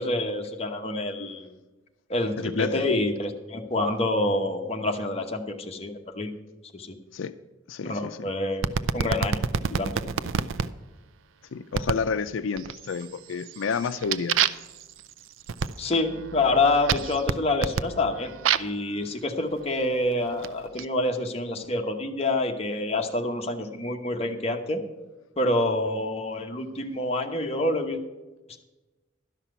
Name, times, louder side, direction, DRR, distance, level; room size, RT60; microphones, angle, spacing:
voice 1, 0.0-1.6 2.1-6.3 6.7-7.0 7.8-8.6 8.9-9.4 9.8-9.9 15.8-18.3 18.6-24.8 25.4-28.0, left 2 dB, 30° left, 3 dB, 1.0 m, -27 dB
voice 2, 2.4-2.8 7.1-7.3 7.7-8.3 11.5-14.4, left 5 dB, 90° left, 12 dB, 0.4 m, -30 dB
sound 1, 8.6-10.7 11.7-12.1 12.6-13.0 13.4-18.8 19.6-20.8, right 7 dB, 90° right, 0.4 m, -28 dB
12.0 x 5.8 x 8.0 m, 1.1 s
head